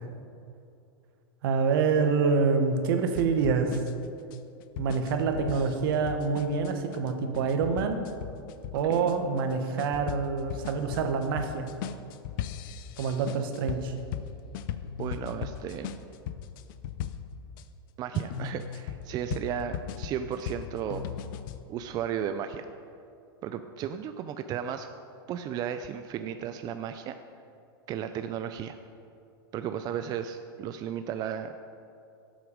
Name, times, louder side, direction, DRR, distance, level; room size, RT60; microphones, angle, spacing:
voice 1, 1.4-3.9 4.8-8.1 8.7-11.7 13.0-13.9, right 5 dB, 65° right, 6 dB, 1.3 m, -26 dB
sound 1, 3.2-17.6 18.1-21.6, left 9 dB, 60° left, 0.6 m, -38 dB
voice 2, 15.0-15.9 18.0-21.1 21.7-22.7 23.4-24.9 25.3-27.2 27.9-28.8 29.5-31.5, right 9 dB, 30° right, 9 dB, 0.4 m, -34 dB
12.5 x 8.0 x 5.1 m, 2.6 s
supercardioid pair, 130°, 12 cm